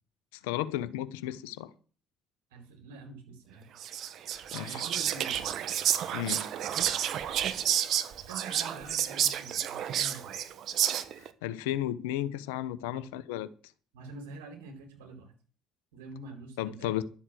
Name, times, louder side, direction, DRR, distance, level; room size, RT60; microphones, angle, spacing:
voice 1, 0.4-1.7 4.5-4.8 6.1-6.5 11.2-13.5 16.6-17.0, left 13 dB, 80° left, 0.9 m, -33 dB
voice 2, 2.5-3.7 4.6-5.5 8.3-10.4 12.9-13.2 13.9-15.3 15.9-17.0, right 3 dB, 80° right, 4.3 m, -46 dB
Whispering, 3.8-11.3, right 10 dB, 60° right, 1.3 m, -30 dB
12.0 x 7.9 x 7.8 m
hypercardioid pair, 60°, 0 cm